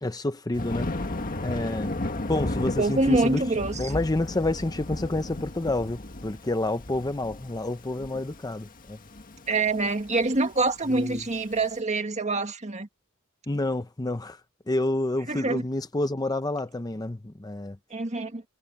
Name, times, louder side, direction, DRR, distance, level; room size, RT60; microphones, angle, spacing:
voice 1, 0.0-0.9 1.4-2.0 2.3-3.4 3.8-9.0 10.9-11.2 13.5-14.4 14.7-17.8, left 2 dB, 20° left, 0.7 m, -29 dB
Thunder, 0.5-11.6, left 1 dB, 40° left, 1.7 m, -34 dB
voice 2, 2.8-3.9 9.5-12.9 15.3-15.6 17.9-18.4, right 2 dB, 35° right, 1.8 m, -25 dB
head